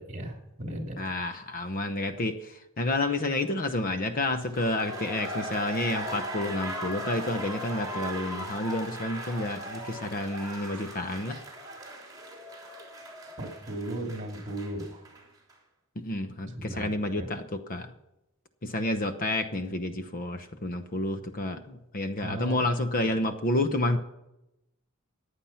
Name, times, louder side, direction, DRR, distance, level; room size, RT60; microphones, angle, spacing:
voice 1, 0.0-1.0 13.4-15.2 16.5-17.3 22.2-22.6, right 1 dB, 35° right, 2 dB, 3.0 m, -36 dB
voice 2, 1.0-11.4 16.0-17.9 18.6-24.0, left 2 dB, 40° left, 9 dB, 0.9 m, -30 dB
sound 1, 4.4-15.2 15.5-15.6, right 1 dB, 20° right, 3.5 m, -38 dB
15.0 x 10.0 x 5.7 m, 0.89 s
head